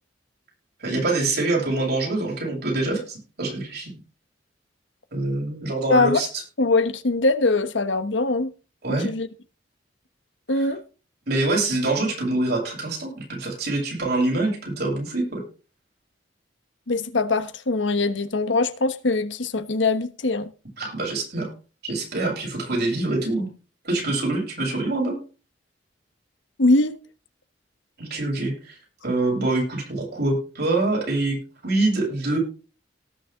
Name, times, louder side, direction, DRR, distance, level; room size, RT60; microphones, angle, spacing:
voice 1, 0.8-3.9 5.1-6.3 8.8-9.1 10.5-10.7 11.3-15.4 20.8-21.5 21.8-23.5 23.8-25.2 28.0-28.8 29.0-31.4 31.6-32.4, right 2 dB, 60° right, 7.9 m, -25 dB
voice 2, 5.9-6.2 6.6-8.5 9.0-9.3 10.5-10.8 16.9-20.5 26.6-27.0, left 3 dB, 90° left, 1.3 m, -22 dB
18.0 x 6.7 x 3.7 m
head